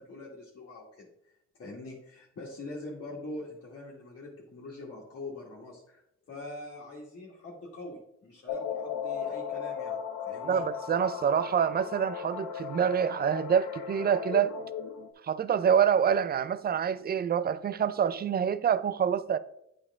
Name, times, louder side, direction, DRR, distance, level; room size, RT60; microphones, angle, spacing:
voice 1, 0.0-6.0 6.3-10.6, left 2 dB, 45° left, 1.8 m, -44 dB
sound 1, 8.5-15.1, left 7 dB, 90° left, 1.0 m, -36 dB
voice 2, 10.4-14.5 15.3-19.4, right 8 dB, 30° right, 0.4 m, -26 dB
8.3 x 5.1 x 3.5 m
cardioid pair, 90°, 30 cm